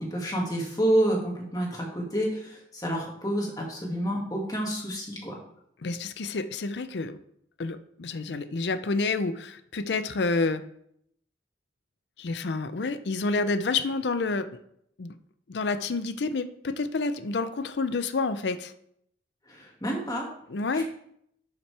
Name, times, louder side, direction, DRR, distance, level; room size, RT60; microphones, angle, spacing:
voice 1, 0.0-5.3 19.5-20.3 20.7-20.8, right 1 dB, 20° left, -1 dB, 2.0 m, -29 dB
voice 2, 5.8-7.2 7.6-10.6 12.2-14.5 15.0-15.1 15.5-18.7 20.5-20.8, left 3 dB, 70° left, 11 dB, 0.5 m, -29 dB
11.5 x 5.8 x 3.3 m, 0.72 s
head